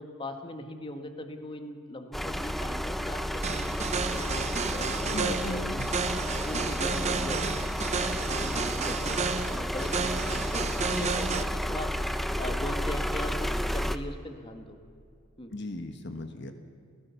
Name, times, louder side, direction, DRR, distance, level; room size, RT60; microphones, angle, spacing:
voice 1, 0.0-5.8 6.4-9.2 9.5-14.8 15.4-15.5, left 1 dB, 25° left, 6 dB, 1.7 m, -40 dB
sound 1, 2.1-14.0, equal, ahead, 0.7 m, -31 dB
sound 2, 3.4-11.4, right 5 dB, 35° right, 0.8 m, -32 dB
sound 3, 5.0-10.9, equal, 75° left, 2.2 m, -48 dB
voice 2, 5.0-5.9 15.5-16.5, left 2 dB, 60° left, 7 dB, 1.3 m, -37 dB
29.5 x 16.0 x 7.1 m, 2.4 s
head